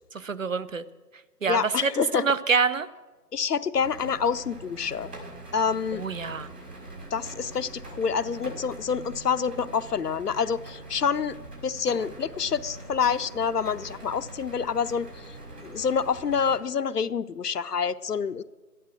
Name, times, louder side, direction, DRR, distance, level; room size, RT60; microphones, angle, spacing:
voice 1, 0.1-0.8 1.4-1.9 2.1-2.9 5.9-6.5, right 5 dB, 55° right, 14 dB, 0.7 m, -26 dB
voice 2, 1.5-2.4 3.3-5.1 5.5-6.0 7.1-11.4 11.6-15.4 15.6-18.4, left 6 dB, 70° left, 14 dB, 0.7 m, -27 dB
sound 1, 3.8-16.6, right 2 dB, 75° right, 6.0 m, -43 dB
12.5 x 11.0 x 7.6 m, 1.3 s
figure-of-eight pair, 150°, 48 cm